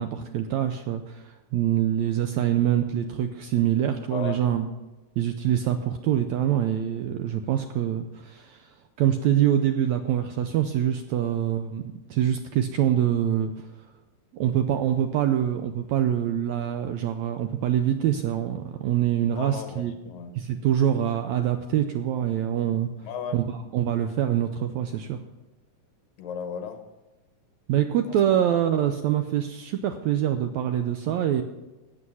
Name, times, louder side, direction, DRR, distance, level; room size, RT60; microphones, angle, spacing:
voice 1, 0.0-4.7 5.2-8.7 9.0-11.8 12.1-13.7 14.3-19.9 20.4-22.9 23.3-25.2 27.7-31.4, right 10 dB, 80° right, 7 dB, 1.7 m, -25 dB
voice 2, 4.1-4.4 11.2-11.3 19.3-20.3 23.0-23.4 26.2-26.8 28.1-28.2, left 7 dB, 80° left, 6 dB, 2.9 m, -35 dB
12.5 x 8.6 x 5.6 m, 1.1 s
omnidirectional pair, 3.9 m